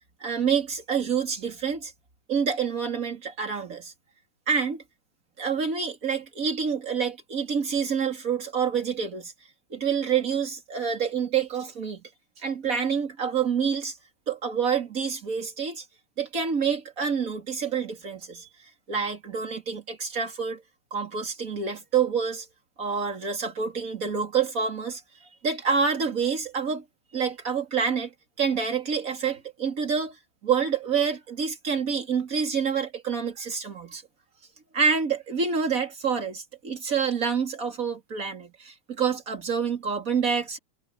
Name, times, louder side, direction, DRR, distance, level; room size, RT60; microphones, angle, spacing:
voice 1, 0.2-1.9 2.3-3.9 4.5-4.8 5.4-9.3 9.7-12.0 12.4-14.0 14.3-15.8 16.2-18.5 18.9-20.6 20.9-22.5 22.8-25.0 25.4-26.8 27.1-28.1 28.4-34.0 34.7-40.6, right 6 dB, 25° right, 3.0 m, -27 dB
omnidirectional pair, 3.7 m